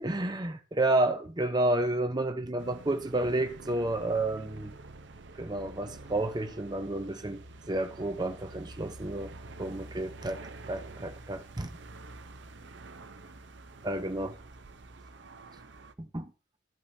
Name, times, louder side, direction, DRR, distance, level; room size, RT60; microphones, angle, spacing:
voice 1, 0.0-4.7 5.4-11.8 13.8-14.4 16.0-16.3, right 2 dB, 20° right, 0.8 m, -31 dB
sound 1, 2.6-15.9, right 2 dB, 65° right, 0.8 m, -48 dB
14.5 x 5.6 x 2.7 m
head